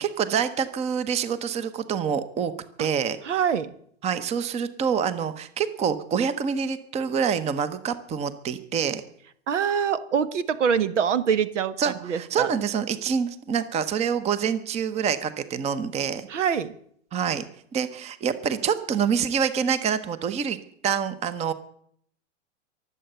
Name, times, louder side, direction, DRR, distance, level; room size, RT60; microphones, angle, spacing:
voice 1, 0.0-2.5 2.8-3.2 4.0-9.0 11.8-16.3 17.1-17.4 17.7-20.6 20.8-21.5, right 7 dB, 20° right, 14 dB, 0.8 m, -26 dB
voice 2, 3.2-3.7 9.5-12.5 16.3-16.7, right 7 dB, 85° right, 15 dB, 1.3 m, -24 dB
23.0 x 8.0 x 6.8 m, 0.66 s
hypercardioid pair, 135°, 35 cm